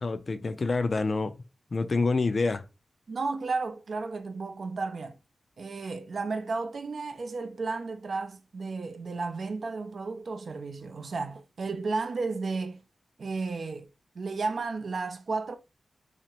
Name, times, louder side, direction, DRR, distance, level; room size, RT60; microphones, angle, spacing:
voice 1, 0.0-1.3 1.7-2.6, left 3 dB, 50° left, 0.3 m, -27 dB
voice 2, 3.1-5.2 5.6-12.8 13.2-13.9 14.2-15.6, right 4 dB, 70° right, 0.4 m, -33 dB
2.8 x 2.4 x 3.0 m
wide cardioid pair, 85°, 0 cm